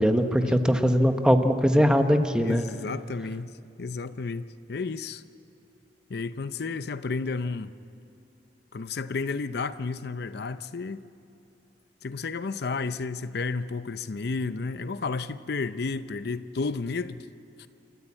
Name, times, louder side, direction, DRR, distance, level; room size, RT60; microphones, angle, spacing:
voice 1, 0.0-2.6, equal, 5° right, 7 dB, 1.0 m, -21 dB
voice 2, 2.4-3.5 3.8-5.2 6.1-7.7 8.7-11.0 12.0-17.2 17.6-17.7, left 4 dB, 65° left, 13 dB, 0.6 m, -32 dB
28.0 x 14.0 x 8.7 m, 2.7 s
head